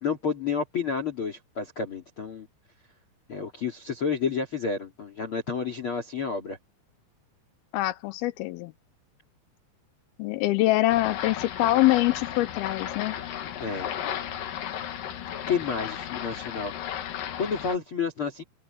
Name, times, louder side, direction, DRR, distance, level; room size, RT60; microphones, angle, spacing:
voice 1, 0.0-2.5 3.3-6.6 13.6-13.9 15.5-16.7 17.4-18.4, left 5 dB, 35° left, 3.0 m, -30 dB
voice 2, 7.7-8.7 10.2-13.2, left 17 dB, 80° left, 2.3 m, -24 dB
sound 1, 10.9-17.8, left 10 dB, 60° left, 2.9 m, -34 dB
open air
omnidirectional pair, 5.1 m